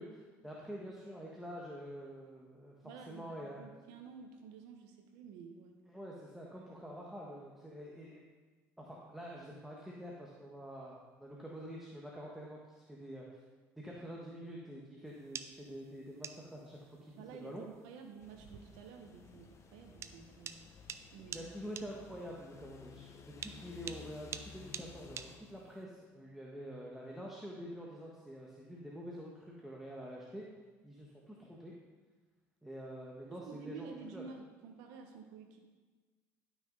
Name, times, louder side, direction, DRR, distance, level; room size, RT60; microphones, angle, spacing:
voice 1, 0.0-2.7 3.1-3.6 5.9-8.2 8.8-13.4 13.8-17.1 17.4-17.6 21.2-30.4 30.8-31.7 32.6-34.2, equal, 5° right, -4 dB, 1.4 m, -47 dB
voice 2, 2.8-5.7 17.2-20.7 21.1-21.7 33.3-35.6, right 5 dB, 85° right, 4 dB, 1.2 m, -51 dB
sound 1, 15.1-25.8, right 7 dB, 45° right, 0.5 m, -49 dB
sound 2, 18.2-25.4, left 5 dB, 45° left, 0.9 m, -55 dB
11.5 x 6.1 x 4.0 m, 1.3 s
supercardioid pair, 85°, 7 cm